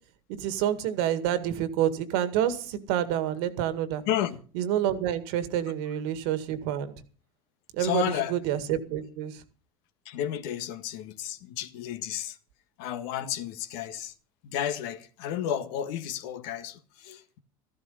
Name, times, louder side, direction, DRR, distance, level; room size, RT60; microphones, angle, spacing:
voice 1, 0.4-4.0 4.6-6.9 7.8-8.0 8.3-9.3, right 11 dB, 70° right, 2.0 m, -28 dB
voice 2, 4.0-4.4 7.8-8.4 10.0-12.4 12.8-14.1 14.4-17.4, left 10 dB, 70° left, 1.7 m, -32 dB
14.0 x 12.5 x 5.6 m
supercardioid pair, 100°, 13 cm